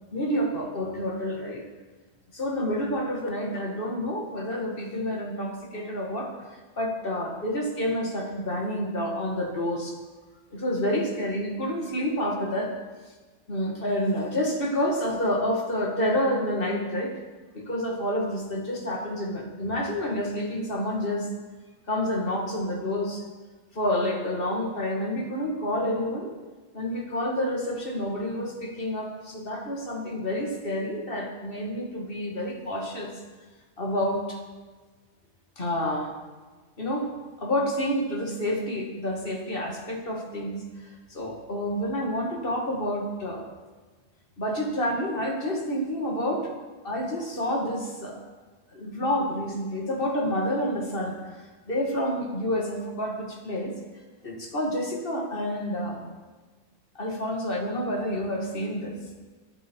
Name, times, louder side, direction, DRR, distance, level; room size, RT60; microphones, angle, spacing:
voice 1, 0.1-1.6 2.3-6.5 6.8-9.9 10.5-12.7 13.5-17.2 17.5-21.3 21.9-23.2 23.7-26.3 26.7-33.1 33.8-34.4 35.6-36.1 36.8-37.1 37.4-43.5 44.4-46.5 46.8-48.2 48.7-51.3 51.7-53.7 54.2-56.1 57.0-59.0, equal, 40° left, 1 dB, 2.3 m, -29 dB
23.5 x 8.1 x 4.6 m, 1.3 s
omnidirectional pair, 1.4 m